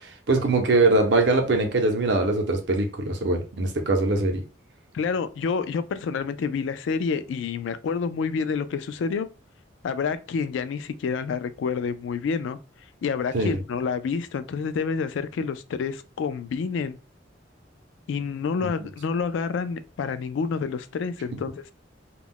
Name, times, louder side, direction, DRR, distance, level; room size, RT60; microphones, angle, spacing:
voice 1, 0.0-4.4 13.3-13.6, right 2 dB, 65° right, 0.6 m, -22 dB
voice 2, 4.9-9.3 9.8-12.6 13.0-17.0 18.1-21.7, left 5 dB, 75° left, 0.3 m, -28 dB
2.3 x 2.1 x 3.5 m
head